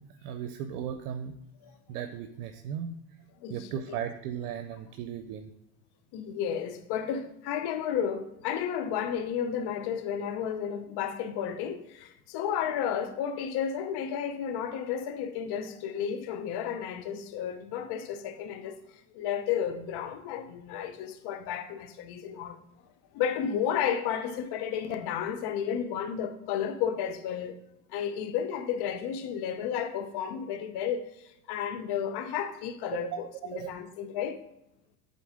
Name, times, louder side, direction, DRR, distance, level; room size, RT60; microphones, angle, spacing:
voice 1, 0.2-1.4 1.9-2.9 3.5-5.5 32.9-33.1 33.4-33.7, right 9 dB, 85° right, 0.6 m, -36 dB
voice 2, 3.4-4.0 6.1-22.6 23.1-27.6 27.9-34.4, left 8 dB, 60° left, 0.8 m, -32 dB
8.2 x 4.1 x 3.6 m
supercardioid pair, 90°, 45 cm